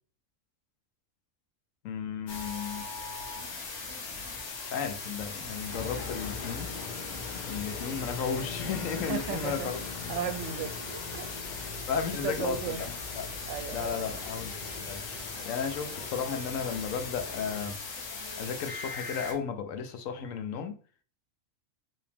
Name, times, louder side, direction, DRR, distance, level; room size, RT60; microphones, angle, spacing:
voice 1, 1.8-2.8 4.7-6.7 7.5-9.8 11.9-13.3 13.7-15.0 15.5-17.8 18.4-20.7, left 6 dB, 90° left, 1.1 m, -34 dB
sound 1, 2.3-19.3, left 4 dB, 65° left, 1.2 m, -39 dB
sound 2, 5.7-17.7, left 5 dB, 50° left, 0.6 m, -42 dB
voice 2, 9.1-9.7 10.1-11.3 12.2-12.9 13.5-14.2, right 8 dB, 70° right, 0.9 m, -35 dB
4.7 x 3.1 x 3.4 m
omnidirectional pair, 1.3 m